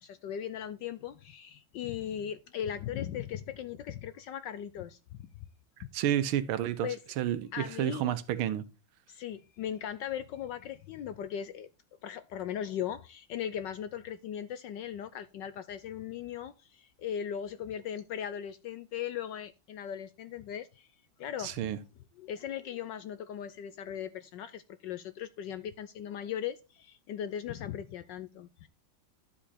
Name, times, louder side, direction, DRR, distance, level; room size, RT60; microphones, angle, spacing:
voice 1, 0.0-5.3 6.8-7.0 7.5-8.1 9.1-11.7 12.0-20.9 21.2-21.5 22.2-28.7, left 9 dB, 75° left, 1.1 m, -38 dB
voice 2, 5.9-6.9 7.2-8.7 21.4-21.8, right 11 dB, 75° right, 1.6 m, -30 dB
11.5 x 5.1 x 4.2 m
omnidirectional pair, 2.4 m